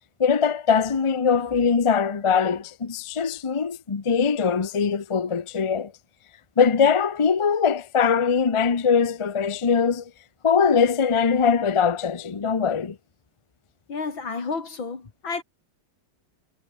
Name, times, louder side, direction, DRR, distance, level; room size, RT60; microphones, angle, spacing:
voice 1, 0.2-5.9 6.6-10.1 10.4-13.0, left 6 dB, 40° left, 0.4 m, -22 dB
voice 2, 13.9-15.4, left 4 dB, 90° left, 4.4 m, -31 dB
omnidirectional pair, 2.1 m